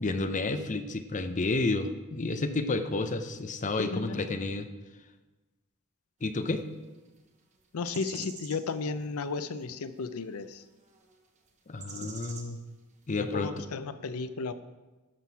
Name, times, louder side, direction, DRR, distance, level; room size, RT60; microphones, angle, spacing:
voice 1, 0.0-4.7 6.2-6.6 11.7-12.6 13.1-13.5, left 3 dB, 35° left, 9 dB, 0.6 m, -30 dB
voice 2, 3.8-4.2 7.7-10.6 12.0-12.1 13.2-14.5, left 4 dB, 75° left, 12 dB, 0.5 m, -34 dB
sound 1, 6.9-7.2 7.9-8.6 9.6-9.7 10.5-10.6 10.9-11.2 11.8-12.5 13.0-13.1, right 5 dB, 35° right, 1.1 m, -45 dB
12.5 x 6.0 x 4.7 m, 1.2 s
head